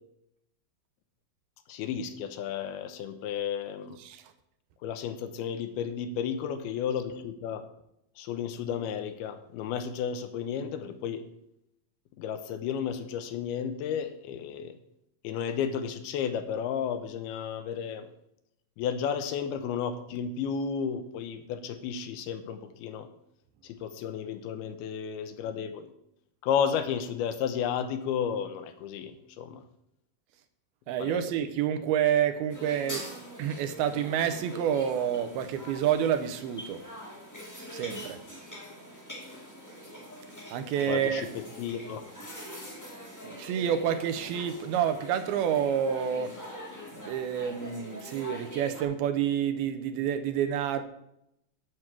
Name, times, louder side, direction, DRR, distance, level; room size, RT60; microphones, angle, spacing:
voice 1, 1.7-4.0 4.8-7.6 8.2-11.2 12.2-14.7 15.2-18.1 18.8-23.1 23.6-25.9 26.4-29.6 31.0-31.3 40.9-42.0, left 7 dB, 85° left, 9 dB, 2.7 m, -33 dB
voice 2, 30.9-33.1 33.4-36.8 37.7-38.2 40.5-41.3 43.2-46.3 46.9-50.8, right 9 dB, 85° right, 9 dB, 2.6 m, -28 dB
sound 1, 32.5-48.8, equal, 20° left, 0.4 m, -44 dB
9.6 x 4.6 x 7.4 m, 0.80 s
omnidirectional pair, 4.4 m